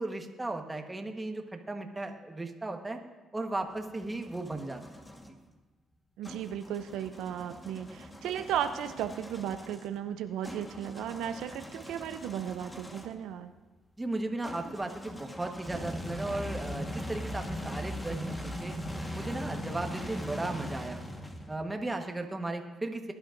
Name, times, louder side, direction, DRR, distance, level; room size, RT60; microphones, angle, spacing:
voice 1, 0.0-3.0 3.3-4.8 14.0-18.8 19.1-21.0 21.5-23.1, right 2 dB, 15° right, 4 dB, 1.3 m, -36 dB
sound 1, 3.5-5.3 6.2-13.2 14.4-21.7, equal, 15° left, 1.4 m, -40 dB
voice 2, 6.2-13.5, right 9 dB, 85° right, 8 dB, 0.5 m, -35 dB
20.5 x 11.5 x 2.6 m, 1.2 s
cardioid pair, 90°, 0 cm